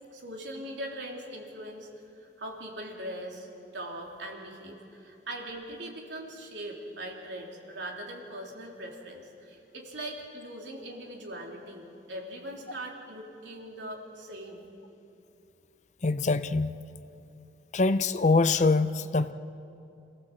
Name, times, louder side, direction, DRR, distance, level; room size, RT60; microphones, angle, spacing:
voice 1, 0.1-1.9 2.2-3.5 3.7-14.6, right 1 dB, 75° right, -1 dB, 3.4 m, -41 dB
voice 2, 16.0-16.8 17.7-19.3, left 3 dB, 40° left, 12 dB, 0.5 m, -24 dB
27.0 x 16.0 x 7.6 m, 2.7 s
head